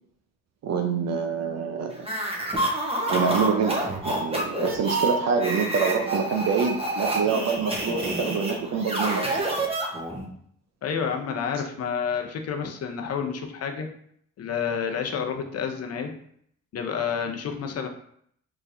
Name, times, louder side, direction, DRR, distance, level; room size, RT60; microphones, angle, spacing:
voice 1, 0.6-2.1 3.1-9.6, right 5 dB, 60° right, 5 dB, 0.6 m, -26 dB
sound 1, 2.0-10.3, right 1 dB, 20° right, 1.0 m, -28 dB
voice 2, 10.8-13.9 14.4-16.2 16.7-17.9, left 6 dB, 55° left, 5 dB, 0.7 m, -29 dB
4.7 x 3.1 x 2.6 m, 0.66 s
cardioid pair, 90°, 30 cm